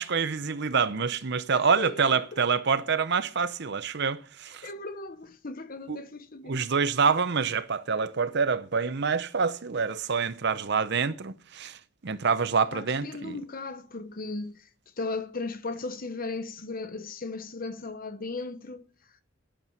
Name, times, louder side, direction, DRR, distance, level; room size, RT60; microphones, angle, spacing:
voice 1, 0.0-4.7 5.9-6.0 6.5-11.8 12.0-13.4, right 5 dB, 55° right, 0.7 m, -26 dB
voice 2, 1.5-2.4 4.6-6.6 12.7-14.6 15.0-18.8, left 3 dB, 45° left, 1.0 m, -36 dB
11.0 x 8.8 x 7.1 m
head